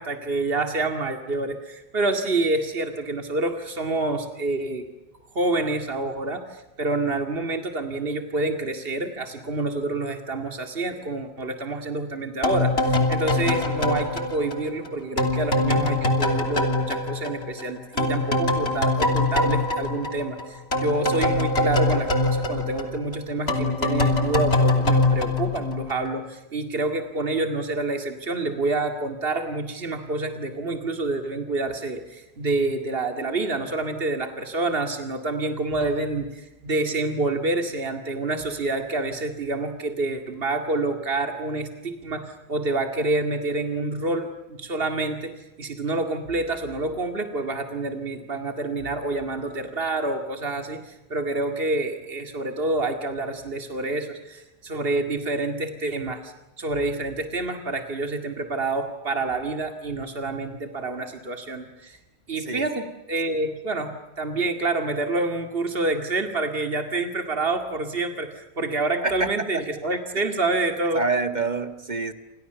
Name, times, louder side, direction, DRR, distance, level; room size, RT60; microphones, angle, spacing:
voice 1, 0.0-4.8 5.3-45.3 45.6-62.0 62.3-71.0, right 2 dB, 65° right, 6 dB, 2.4 m, -28 dB
sound 1, 12.4-17.7 18.0-26.1, left 2 dB, 75° left, 3.5 m, -23 dB
voice 2, 70.9-72.1, right 3 dB, 45° right, 9 dB, 1.9 m, -26 dB
29.0 x 28.0 x 6.9 m, 0.99 s
omnidirectional pair, 1.1 m